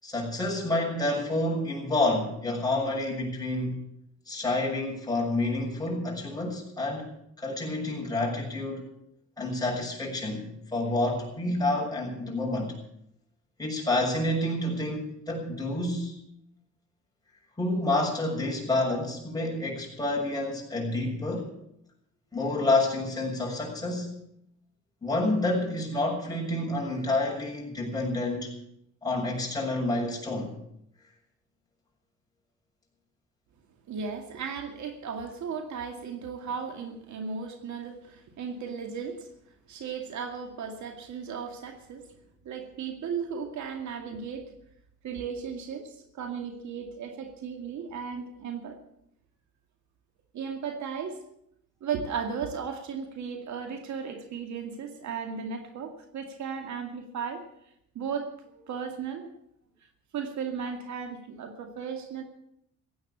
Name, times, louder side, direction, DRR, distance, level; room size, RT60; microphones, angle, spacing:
voice 1, 0.0-3.8 4.3-7.1 7.4-8.8 9.4-12.7 13.6-16.1 17.6-21.5 22.3-24.2 25.0-28.5 29.0-30.5, left 2 dB, 10° left, -2 dB, 6.8 m, -29 dB
voice 2, 33.9-39.3 39.7-42.1 42.4-44.5 45.0-48.8 50.3-51.2 51.8-57.4 57.9-59.3 60.1-62.2, right 6 dB, 70° right, 5 dB, 2.3 m, -35 dB
16.0 x 9.6 x 8.6 m, 0.76 s
cardioid pair, 90°, 30 cm